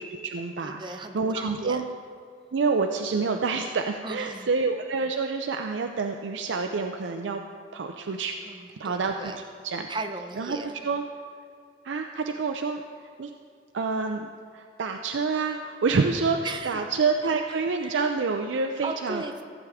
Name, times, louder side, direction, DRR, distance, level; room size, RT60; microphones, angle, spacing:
voice 1, 0.0-1.8 2.5-7.4 7.7-8.3 8.8-9.9 10.4-11.0 11.8-12.8 13.2-13.3 13.7-19.2, right 4 dB, 90° right, 4 dB, 0.5 m, -28 dB
voice 2, 0.6-1.8 4.0-4.5 8.5-9.4 9.9-10.7 16.4-16.8 17.8-18.0 18.8-19.4, right 3 dB, 25° right, 6 dB, 0.6 m, -36 dB
15.0 x 8.2 x 3.6 m, 2.2 s
head